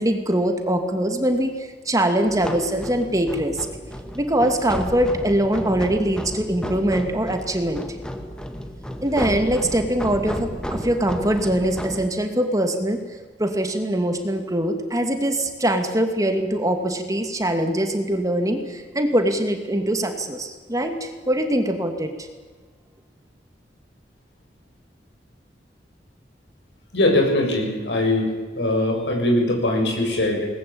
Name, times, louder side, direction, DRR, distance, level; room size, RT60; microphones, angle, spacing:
voice 1, 0.0-3.6 4.1-7.8 9.0-13.0 13.4-22.1, right 1 dB, 20° right, 6 dB, 2.4 m, -22 dB
sound 1, 2.2-12.1, equal, 5° left, 2.0 m, -33 dB
voice 2, 26.9-28.3 28.6-30.5, left 1 dB, 90° left, 1 dB, 7.1 m, -21 dB
21.0 x 20.0 x 8.7 m, 1.4 s
head